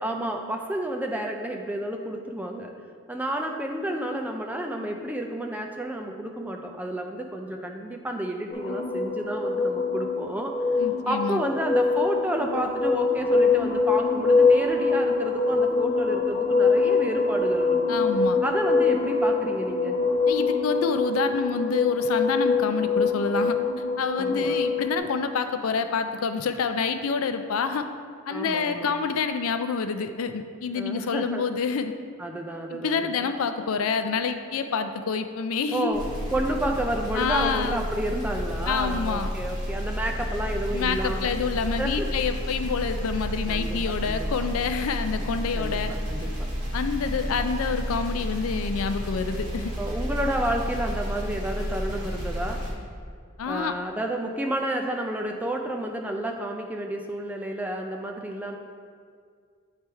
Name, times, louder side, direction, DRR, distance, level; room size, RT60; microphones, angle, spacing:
voice 1, 0.0-2.7 3.1-10.5 11.1-17.8 18.4-20.0 24.2-24.6 28.3-28.9 30.8-31.4 32.2-33.3 35.7-36.0 36.3-41.3 41.8-42.1 43.5-44.3 45.5-45.8 46.1-46.5 49.8-52.6 53.5-58.6, right 1 dB, 5° right, 2 dB, 0.3 m, -30 dB
sound 1, 8.5-25.0, left 4 dB, 30° left, 0.8 m, -24 dB
voice 2, 10.8-11.4 17.9-18.4 20.3-23.6 24.0-27.9 28.3-31.9 32.7-36.1 37.1-37.9 38.6-39.3 40.7-45.9 46.7-49.7 53.4-53.8, left 5 dB, 75° left, 8 dB, 0.4 m, -27 dB
sound 2, 35.9-52.7, equal, 35° right, 1.4 m, -31 dB
8.3 x 3.3 x 4.4 m, 2.1 s
head